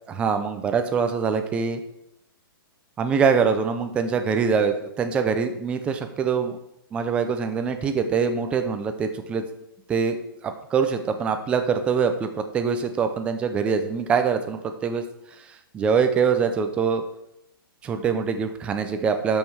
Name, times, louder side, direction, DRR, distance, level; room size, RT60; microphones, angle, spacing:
voice 1, 0.1-1.8 3.0-6.5 6.9-9.4 9.9-10.2 10.4-15.0 15.5-17.0 17.8-19.4, right 6 dB, 10° right, 7 dB, 0.5 m, -24 dB
12.5 x 5.5 x 4.7 m, 0.84 s
hypercardioid pair, 170°, 12 cm